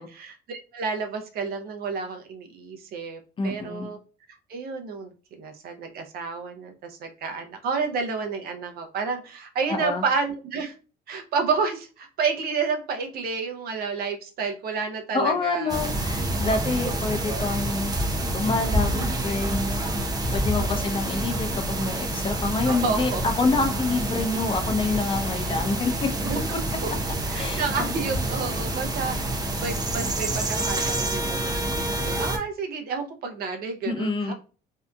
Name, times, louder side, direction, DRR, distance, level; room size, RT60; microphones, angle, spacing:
voice 1, 0.0-4.0 4.5-10.7 11.1-15.7 20.6-20.9 22.7-23.2 26.2-26.4 26.8-26.9 27.3-34.3, right 5 dB, 65° right, 4 dB, 0.6 m, -30 dB
voice 2, 3.4-3.9 9.7-10.0 15.1-17.9 18.3-19.8 20.3-26.1 27.3-27.9 33.8-34.3, left 3 dB, 30° left, 5 dB, 0.5 m, -27 dB
sound 1, 15.7-32.4, right 1 dB, 25° right, 0.6 m, -27 dB
2.7 x 2.4 x 2.2 m, 0.35 s
cardioid pair, 110°, 17 cm